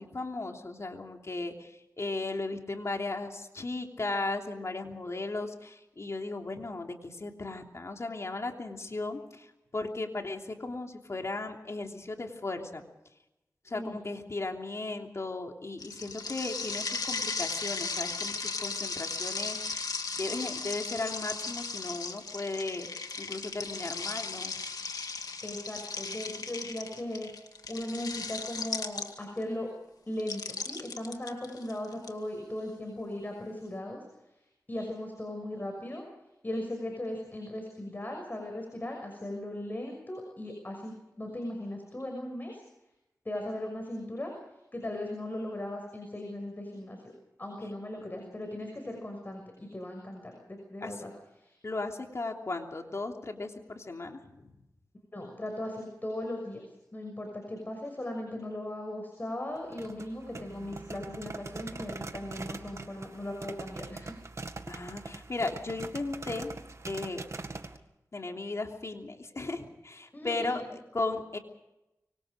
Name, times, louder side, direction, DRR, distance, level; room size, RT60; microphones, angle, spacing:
voice 1, 0.0-9.5 9.7-12.8 13.6-22.9 23.2-24.5 50.8-51.0 51.6-54.5 64.7-66.5 66.9-67.2 68.1-71.4, left 2 dB, 50° left, 3 dB, 3.2 m, -36 dB
sound 1, 15.8-29.4 30.2-32.1, left 4 dB, 85° left, 2.2 m, -36 dB
voice 2, 25.4-27.3 27.7-29.7 30.1-34.1 34.7-36.0 36.4-42.6 43.2-44.3 44.7-47.1 47.4-51.1 51.4-51.6 55.1-56.7 56.9-64.1 70.1-70.6, left 1 dB, 30° left, 3 dB, 6.2 m, -38 dB
sound 2, 59.6-67.8, right 3 dB, 50° right, 2.0 m, -42 dB
25.5 x 24.5 x 5.1 m, 0.91 s
wide cardioid pair, 95°, 6 cm